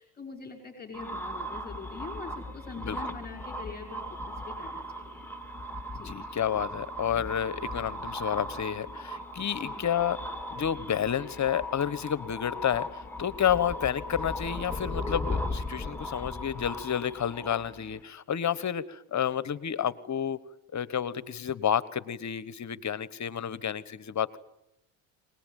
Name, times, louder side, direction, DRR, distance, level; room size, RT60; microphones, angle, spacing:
voice 1, 0.0-5.3 5.9-6.2 9.4-9.9, left 4 dB, 20° left, 3 dB, 5.7 m, -44 dB
sound 1, 0.9-18.0, left 1 dB, 5° left, 2.7 m, -37 dB
voice 2, 6.0-20.4 20.7-24.4, left 9 dB, 40° left, 17 dB, 1.3 m, -30 dB
23.5 x 20.0 x 9.2 m, 0.89 s
supercardioid pair, 85°, 44 cm